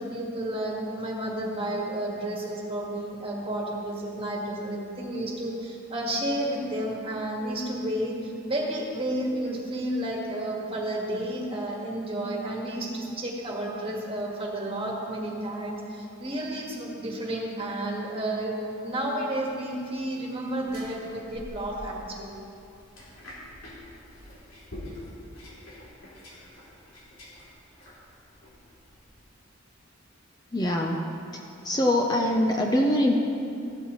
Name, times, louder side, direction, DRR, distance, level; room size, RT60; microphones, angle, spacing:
voice 1, 0.0-22.5, right 1 dB, 30° right, -2 dB, 1.8 m, -31 dB
sound 1, 20.6-29.2, left 1 dB, 90° left, 3.1 m, -46 dB
voice 2, 30.5-31.0 31.6-33.1, left 1 dB, 20° left, 0 dB, 0.6 m, -23 dB
15.0 x 12.0 x 3.1 m, 2.6 s
head